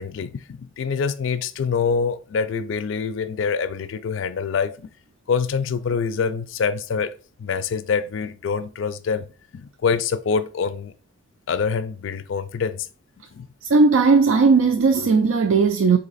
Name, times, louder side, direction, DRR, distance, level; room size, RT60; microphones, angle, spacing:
voice 1, 0.0-4.9 5.3-9.3 9.5-10.9 11.5-12.9 13.3-13.5, left 5 dB, 70° left, 0.4 m, -25 dB
voice 2, 13.7-16.0, right 4 dB, 85° right, 0.4 m, -16 dB
4.0 x 2.8 x 4.0 m
head